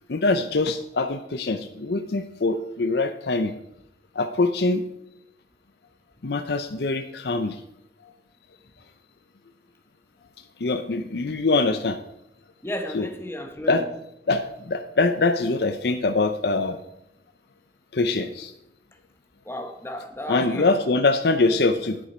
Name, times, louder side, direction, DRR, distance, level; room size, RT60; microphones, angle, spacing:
voice 1, 0.1-3.5 4.1-4.8 6.2-7.6 8.0-8.1 10.6-12.0 12.9-13.1 13.7-13.8 14.3-16.8 17.9-18.5 20.3-22.0, left 3 dB, 60° left, 0.6 m, -23 dB
voice 2, 12.6-13.9 19.4-20.7, left 1 dB, 15° left, 1.0 m, -33 dB
10.0 x 8.7 x 4.3 m
head